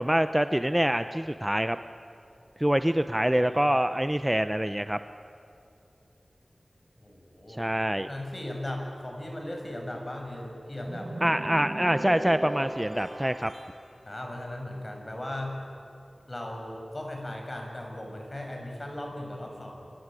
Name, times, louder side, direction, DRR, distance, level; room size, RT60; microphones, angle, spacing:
voice 1, 0.0-1.8 2.6-5.0 7.5-8.1 11.2-13.5, right 1 dB, 10° right, 10 dB, 0.7 m, -25 dB
voice 2, 7.0-7.8 8.1-11.1 14.0-15.6 16.3-19.9, left 1 dB, 30° left, 2 dB, 6.6 m, -37 dB
sound 1, 10.8-13.8, right 1 dB, 45° right, 4.1 m, -37 dB
26.0 x 23.0 x 9.1 m, 2.6 s
wide cardioid pair, 60°, 0 cm